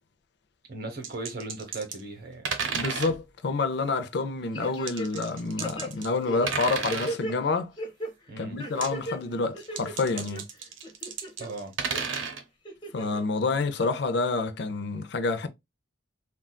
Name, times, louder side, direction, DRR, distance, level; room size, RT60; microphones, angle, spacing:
voice 1, 0.7-2.5 8.3-8.6 11.4-11.7, right 2 dB, 50° right, 1.0 m, -37 dB
sound 1, 1.0-2.0 2.4-3.2 4.9-6.2 6.5-7.2 8.6-9.1 9.6-12.4, right 5 dB, 90° right, 0.7 m, -32 dB
voice 2, 2.7-7.7 8.4-10.5 12.9-15.5, left 3 dB, 60° left, 0.5 m, -28 dB
sound 2, 4.5-5.3 5.6-7.3 7.8-8.1 8.6-9.2 9.5-10.4 10.8-11.5 11.9-12.0 12.6-13.2 13.6-13.7, right 1 dB, 25° left, 0.8 m, -36 dB
3.7 x 2.3 x 2.2 m
head